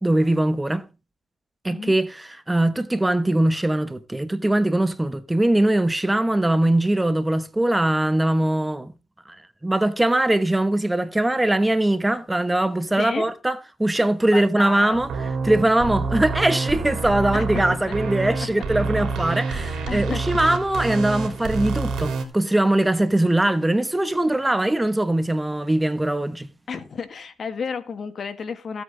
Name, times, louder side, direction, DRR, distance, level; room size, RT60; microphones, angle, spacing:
voice 1, 0.0-0.8 1.6-8.9 9.6-15.1 15.4-26.5, right 1 dB, 10° right, 1.0 m, -21 dB
voice 2, 13.0-13.3 14.3-15.6 17.3-17.9 18.2-18.3 19.9-20.3 26.7-28.8, left 5 dB, 45° left, 1.5 m, -32 dB
sound 1, 14.9-22.2, right 4 dB, 70° right, 3.2 m, -27 dB
15.5 x 8.2 x 3.8 m
cardioid pair, 90°, 0 cm